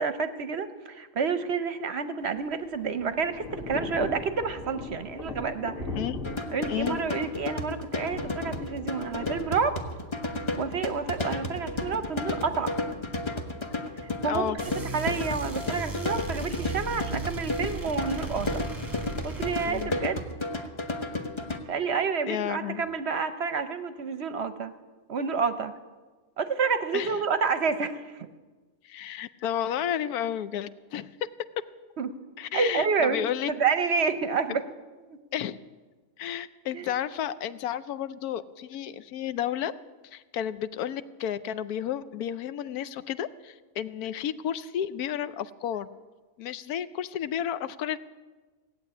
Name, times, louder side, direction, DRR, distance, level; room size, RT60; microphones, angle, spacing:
voice 1, 0.0-5.8 6.5-9.8 10.6-12.7 14.2-14.6 14.9-18.6 19.2-20.2 21.7-24.7 25.1-25.7 26.4-28.3 32.0-32.1 32.5-33.2 33.6-34.6 36.7-36.9, right 5 dB, 55° right, 10 dB, 0.8 m, -29 dB
Thunder / Rain, 2.2-14.2, left 3 dB, 60° left, 2.1 m, -40 dB
sound 1, 6.2-21.6, left 2 dB, 20° left, 0.9 m, -33 dB
voice 2, 6.7-7.0 14.2-14.6 19.6-19.9 22.3-22.8 26.9-27.2 28.8-31.3 32.4-33.5 34.5-34.6 35.3-35.6 36.2-39.7 40.0-45.9 46.4-48.0, left 10 dB, 80° left, 14 dB, 1.1 m, -32 dB
sound 2, 14.6-19.9, right 3 dB, 15° right, 1.0 m, -36 dB
17.0 x 8.0 x 9.5 m, 1.3 s
omnidirectional pair, 1.6 m